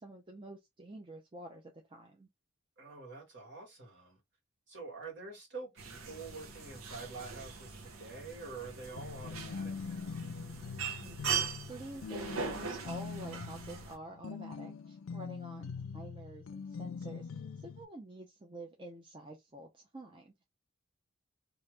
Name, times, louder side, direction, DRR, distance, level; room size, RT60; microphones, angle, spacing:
voice 1, 0.0-2.3 11.0-11.2 11.7-17.3 17.6-20.3, right 1 dB, 25° right, 0.5 m, -48 dB
voice 2, 2.8-4.2 4.7-10.2, right 3 dB, 55° right, 1.8 m, -47 dB
sound 1, 5.8-14.0, right 6 dB, 75° right, 0.8 m, -41 dB
sound 2, 9.0-17.8, left 5 dB, 70° left, 0.4 m, -43 dB
3.1 x 2.5 x 3.2 m
head